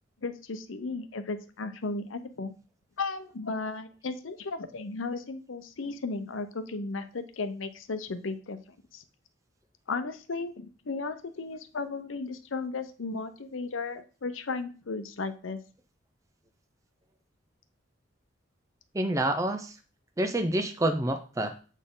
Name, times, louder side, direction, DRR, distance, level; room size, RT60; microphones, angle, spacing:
voice 1, 0.2-2.5 3.0-8.6 8.9-9.0 9.9-15.6, left 3 dB, 90° left, 10 dB, 0.7 m, -35 dB
voice 2, 18.9-19.7 20.2-21.5, right 1 dB, 15° right, 6 dB, 0.5 m, -28 dB
8.1 x 4.2 x 3.7 m, 0.37 s
head